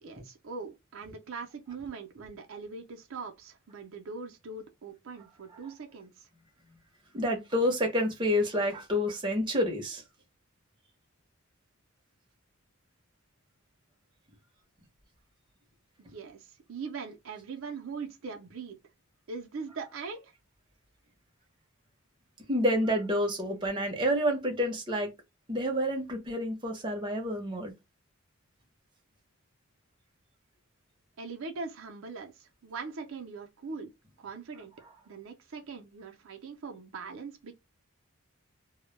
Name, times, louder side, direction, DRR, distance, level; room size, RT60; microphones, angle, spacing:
voice 1, 0.0-6.3 16.1-18.8 19.3-20.3 31.2-33.9 34.2-34.7 35.1-37.5, right 4 dB, 65° right, 0.4 m, -41 dB
voice 2, 7.1-10.0 22.5-25.1 25.5-27.7, equal, 20° right, 0.6 m, -28 dB
2.1 x 2.1 x 3.0 m
head